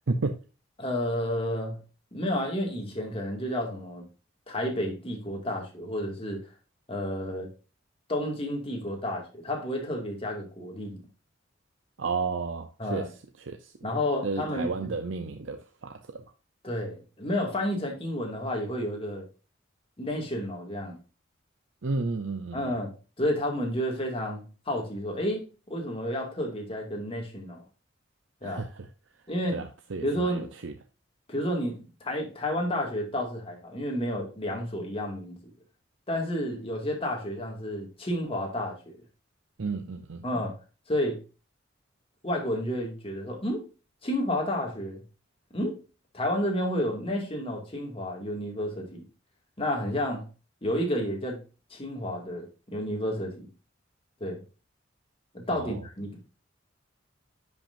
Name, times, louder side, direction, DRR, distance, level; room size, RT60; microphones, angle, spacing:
voice 1, 0.1-0.4 12.0-13.1 13.5-13.7 14.2-16.2 21.8-22.8 28.4-28.9 29.5-30.7 39.6-40.2 55.5-55.8, right 3 dB, 80° right, 0.7 m, -32 dB
voice 2, 0.8-1.8 2.1-4.1 4.5-6.5 6.9-7.5 8.1-11.0 12.8-13.1 13.8-14.9 16.6-19.3 20.0-21.0 22.5-22.9 23.2-25.4 25.7-27.6 28.4-28.6 29.3-29.6 30.0-30.5 31.3-31.8 32.0-35.5 36.1-39.0 40.2-40.5 40.9-41.2 42.2-43.6 44.0-45.0 45.5-45.8 46.1-49.0 49.6-50.3 50.6-51.4 51.7-53.5 54.2-54.4 55.3-56.2, left 1 dB, 30° left, 2.2 m, -31 dB
10.5 x 5.9 x 2.6 m
head